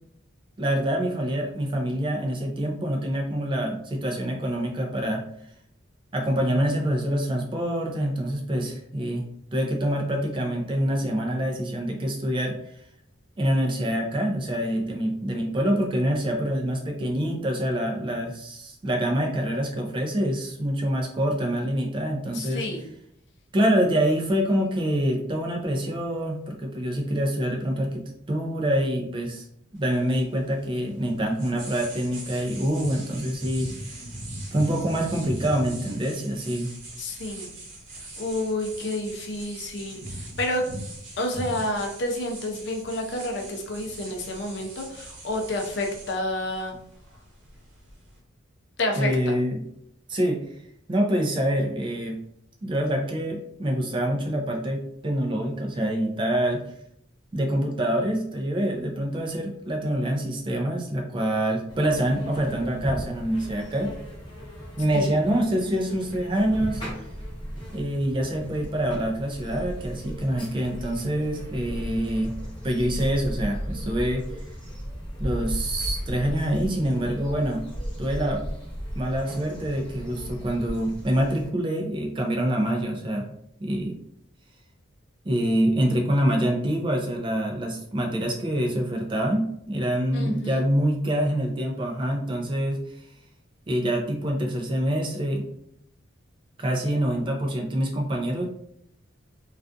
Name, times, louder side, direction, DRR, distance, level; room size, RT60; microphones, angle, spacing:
voice 1, 0.6-5.2 6.1-9.2 9.5-12.6 13.4-22.6 23.5-29.5 29.7-34.0 34.5-36.7 49.0-49.6 50.1-50.4 50.9-52.2 52.6-56.6 57.3-63.9 64.8-66.8 67.7-72.3 72.6-74.2 75.2-77.6 78.0-78.4 78.9-83.3 83.6-84.0 85.2-92.8 93.7-95.5 96.6-98.4, right 1 dB, 25° right, 1 dB, 0.3 m, -26 dB
voice 2, 22.3-22.8 37.0-37.5 37.9-40.6 41.2-46.7 48.8-49.3 64.9-65.2 90.1-90.6, left 1 dB, 60° left, 3 dB, 0.5 m, -30 dB
sound 1, 29.8-48.2, right 1 dB, 75° right, 0.8 m, -40 dB
sound 2, 61.7-81.5, equal, 25° left, 0.8 m, -36 dB
2.3 x 2.3 x 2.4 m, 0.71 s
head